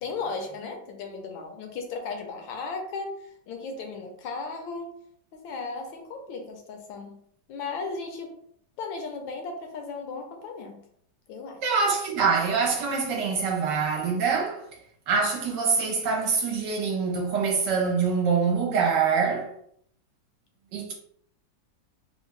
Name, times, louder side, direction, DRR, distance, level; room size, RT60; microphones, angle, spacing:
voice 1, 0.0-3.2 3.5-5.0 5.3-7.2 7.5-8.4 8.8-10.8 11.3-11.7, left 4 dB, 80° left, 1.4 m, -36 dB
voice 2, 11.6-14.6 15.1-19.5 20.7-20.9, right 5 dB, 70° right, 1.3 m, -25 dB
3.5 x 2.2 x 3.2 m
omnidirectional pair, 2.1 m